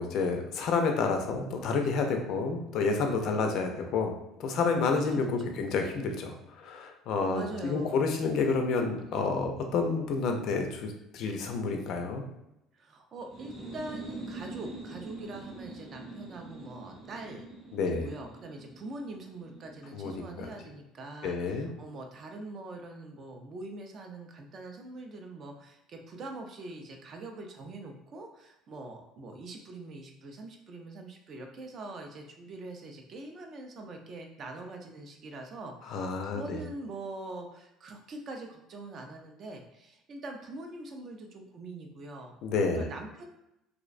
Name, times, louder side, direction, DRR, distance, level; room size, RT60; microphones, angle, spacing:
voice 1, 0.0-4.1 4.4-12.2 17.7-18.1 19.9-20.5 21.2-21.7 35.9-36.6 42.4-42.9, left 4 dB, 55° left, 4 dB, 0.3 m, -29 dB
voice 2, 5.1-5.6 7.3-8.1 12.7-17.5 18.0-42.4 42.7-43.3, right 2 dB, 40° right, 3 dB, 0.4 m, -43 dB
sound 1, 13.2-20.7, right 2 dB, 20° right, 0.7 m, -44 dB
2.4 x 2.1 x 2.4 m, 0.87 s
cardioid pair, 135°, 0 cm